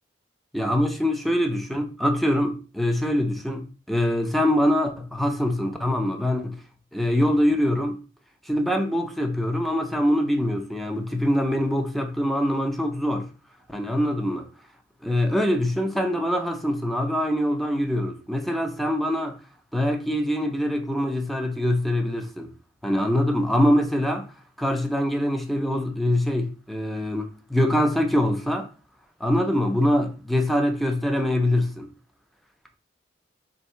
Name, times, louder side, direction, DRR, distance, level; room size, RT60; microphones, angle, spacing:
voice 1, 0.5-6.6 6.9-8.0 8.5-13.3 13.7-14.5 15.0-19.4 19.7-22.5 22.8-24.3 24.6-28.7 29.2-31.9, left 1 dB, ahead, 0.4 m, -24 dB
3.2 x 2.7 x 4.2 m
head